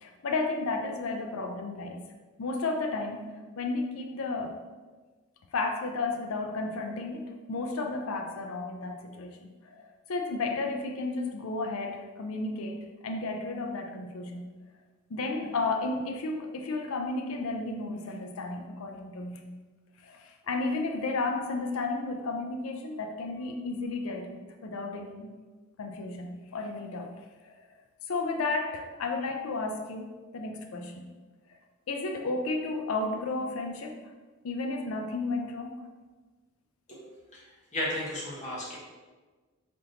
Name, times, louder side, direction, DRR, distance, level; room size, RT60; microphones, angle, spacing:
voice 1, 0.0-2.0 2.4-4.6 5.5-14.5 15.1-19.5 20.0-25.3 25.8-27.1 27.4-27.6 28.1-31.1 31.9-34.0 34.4-35.8, left 3 dB, 75° left, 4 dB, 0.5 m, -33 dB
voice 2, 37.7-38.8, left 1 dB, 35° left, -6 dB, 1.1 m, -33 dB
3.5 x 2.8 x 3.9 m, 1.3 s
head